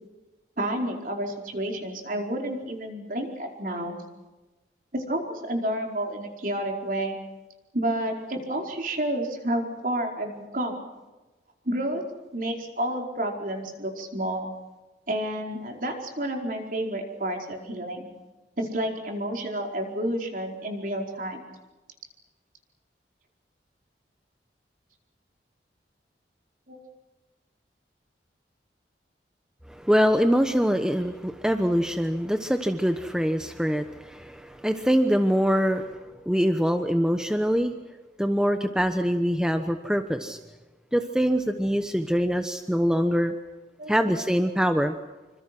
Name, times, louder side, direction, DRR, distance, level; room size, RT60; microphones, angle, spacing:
voice 1, 0.6-3.9 4.9-7.2 7.7-10.8 11.6-12.0 12.3-14.5 15.1-18.1 18.6-21.4 26.7-26.8 43.8-43.9, right 1 dB, 50° right, 2 dB, 4.7 m, -30 dB
voice 2, 29.7-36.0 36.2-37.7 38.2-40.4 40.9-43.3 43.9-44.9, equal, 5° right, 7 dB, 1.0 m, -24 dB
27.0 x 26.0 x 6.1 m, 1.2 s
head